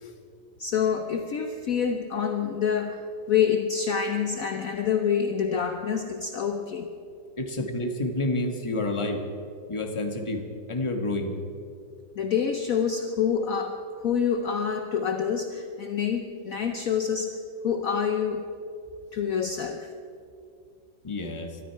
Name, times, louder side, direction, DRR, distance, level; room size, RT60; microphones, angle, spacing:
voice 1, 0.6-6.9 12.2-17.4 17.6-18.5 19.1-19.9, left 7 dB, 60° left, 5 dB, 1.1 m, -27 dB
voice 2, 7.4-9.2 9.7-11.4 21.0-21.6, left 2 dB, 20° left, 4 dB, 1.3 m, -29 dB
23.0 x 13.0 x 4.6 m, 2.5 s
omnidirectional pair, 1.9 m